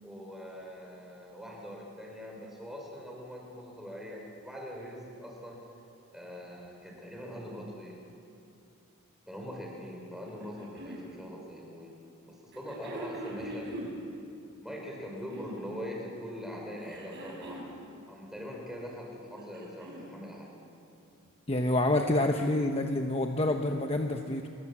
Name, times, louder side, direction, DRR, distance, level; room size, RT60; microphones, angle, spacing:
voice 1, 0.0-5.6 6.1-8.0 9.3-11.9 12.2-13.7 14.6-17.7 18.1-20.5, equal, ahead, -1 dB, 5.6 m, -42 dB
sound 1, 10.2-11.0 12.5-14.0 15.0-15.8 16.8-17.8 19.2-20.1 21.3-21.4, right 1 dB, 55° right, 6.5 m, -42 dB
voice 2, 21.5-24.5, left 1 dB, 30° left, 4 dB, 1.1 m, -27 dB
28.0 x 23.0 x 7.4 m, 2.7 s
head